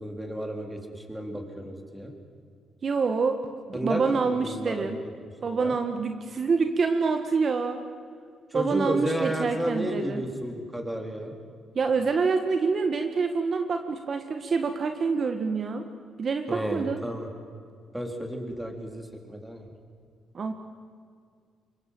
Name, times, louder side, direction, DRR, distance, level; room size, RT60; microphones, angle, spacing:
voice 1, 0.0-2.1 3.7-4.9 5.5-5.7 8.5-11.3 16.5-17.3 17.9-19.7, equal, 5° right, 3 dB, 4.1 m, -32 dB
voice 2, 2.8-3.4 3.7-5.0 5.4-7.8 8.5-10.2 11.7-15.8 16.2-17.0 20.3-20.5, right 4 dB, 45° right, 6 dB, 1.6 m, -26 dB
26.0 x 22.5 x 7.9 m, 2.2 s
cardioid pair, 90°, 0 cm